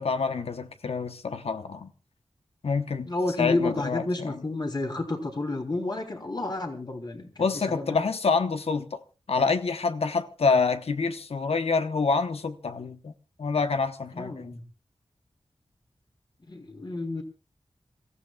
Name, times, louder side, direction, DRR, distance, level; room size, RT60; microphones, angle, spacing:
voice 1, 0.0-1.9 2.6-3.1 3.4-4.4 7.4-9.0 9.3-13.1 13.4-14.5, left 4 dB, 80° left, 1.0 m, -27 dB
voice 2, 3.0-8.0 14.1-14.6 16.5-17.2, left 2 dB, 45° left, 3.1 m, -30 dB
28.0 x 15.5 x 2.4 m
wide cardioid pair, 95°, 10 cm